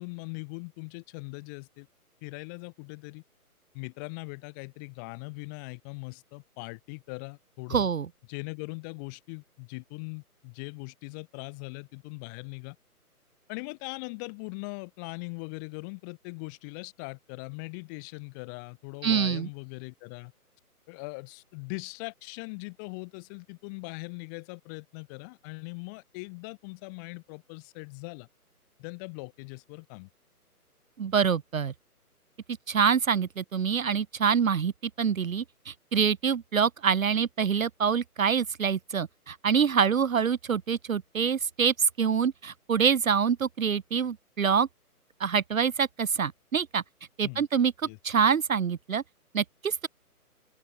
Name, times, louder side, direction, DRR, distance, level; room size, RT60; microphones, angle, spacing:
voice 1, 0.0-1.9 2.2-3.2 3.7-7.9 8.3-12.8 13.5-20.3 20.9-28.3 28.8-30.1 47.2-47.4 47.8-48.0, left 32 dB, 15° left, 2.7 m, -40 dB
voice 2, 7.7-8.1 19.0-19.5 31.0-31.7 32.7-34.7 35.0-44.7 45.2-46.8 47.2-47.7 48.0-49.0 49.3-49.9, right 7 dB, 60° right, 1.1 m, -25 dB
open air
hypercardioid pair, 170°, 46 cm